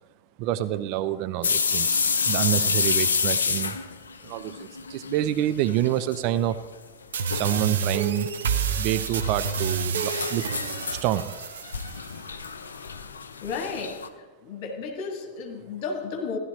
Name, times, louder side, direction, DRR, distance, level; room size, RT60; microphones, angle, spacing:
voice 1, 0.4-3.8 4.2-6.6 7.3-8.3 8.8-10.4 10.9-11.3, right 13 dB, 45° right, 12 dB, 0.4 m, -27 dB
sound 1, 1.4-5.2 5.5-6.2 6.5-6.6 7.3-7.7 8.7-14.1, left 5 dB, 70° left, 0.5 m, -28 dB
sound 2, 7.1-12.1, right 6 dB, 65° right, 0.8 m, -29 dB
voice 2, 13.4-14.0 14.4-16.4, left 4 dB, 45° left, 4 dB, 1.6 m, -33 dB
15.0 x 11.0 x 3.2 m, 1.3 s
figure-of-eight pair, 90°, 0 cm